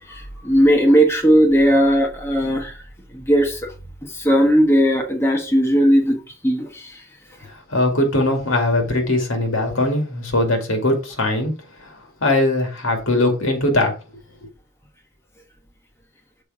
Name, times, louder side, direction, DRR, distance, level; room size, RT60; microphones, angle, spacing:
voice 1, 0.1-2.7 3.1-3.6 4.2-6.2 6.4-6.7, equal, 10° left, 1.3 m, -16 dB
voice 2, 7.7-11.5 11.8-11.9 12.2-13.9, left 1 dB, 60° left, 2.2 m, -20 dB
6.8 x 4.5 x 4.8 m
head